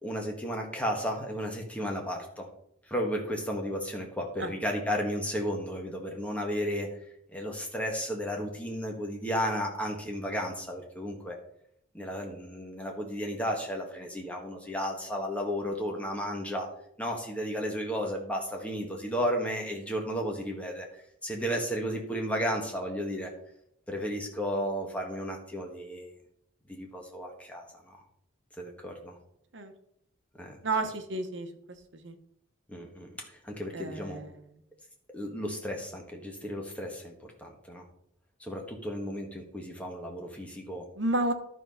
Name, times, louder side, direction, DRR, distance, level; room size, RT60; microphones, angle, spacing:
voice 1, 0.0-2.5 2.9-6.9 7.3-11.4 11.9-16.7 17.0-20.9 21.2-23.3 23.9-26.1 26.7-28.0 28.6-29.1 30.4-30.6 32.7-34.2 35.1-37.9 38.4-40.9, equal, 5° left, 1 dB, 1.6 m, -33 dB
voice 2, 30.6-31.5 32.0-32.1 33.7-34.3 41.0-41.3, right 2 dB, 65° right, 6 dB, 1.1 m, -30 dB
12.0 x 4.6 x 5.6 m, 0.71 s
head